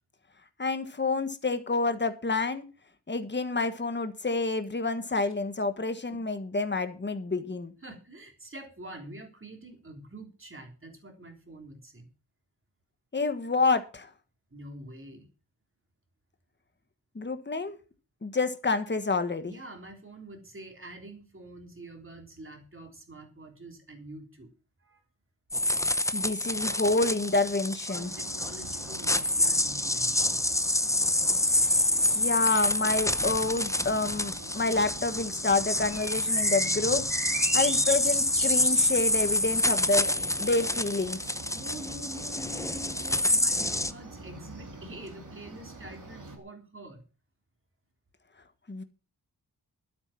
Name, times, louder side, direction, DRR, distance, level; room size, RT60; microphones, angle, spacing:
voice 1, 0.6-2.6 3.1-7.7 13.1-14.1 17.1-17.8 18.2-19.5 26.1-28.1 31.6-31.7 32.1-37.0 37.3-40.1 40.4-41.2 48.7-48.8, left 3 dB, 25° left, 9 dB, 1.4 m, -28 dB
voice 2, 7.8-12.1 14.5-15.3 19.5-24.5 24.8-25.0 27.9-30.4 36.8-37.1 41.5-47.0, right 1 dB, 30° right, 4 dB, 3.4 m, -46 dB
sound 1, 25.5-43.9, left 1 dB, 5° left, 0.7 m, -27 dB
sound 2, 28.0-46.4, right 3 dB, 45° right, 2.8 m, -43 dB
12.0 x 10.0 x 5.8 m, 0.35 s
wide cardioid pair, 125°, 42 cm